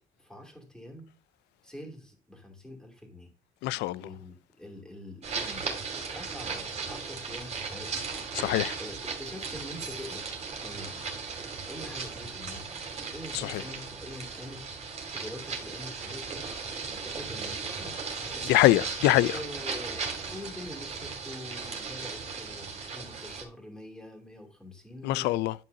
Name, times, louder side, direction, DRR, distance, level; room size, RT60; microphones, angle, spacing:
voice 1, 0.2-1.1 1.6-3.3 3.6-5.7 6.1-8.4 8.8-10.3 10.6-11.1 11.7-18.0 18.3-18.6 19.3-25.4, left 1 dB, 5° left, 2.7 m, -45 dB
voice 2, 3.6-4.0 8.4-8.7 13.4-13.6 18.5-19.3 25.0-25.5, left 17 dB, 85° left, 0.4 m, -23 dB
sound 1, 5.2-23.4, right 5 dB, 40° right, 2.5 m, -37 dB
10.5 x 5.5 x 2.7 m
cardioid pair, 110°, 17 cm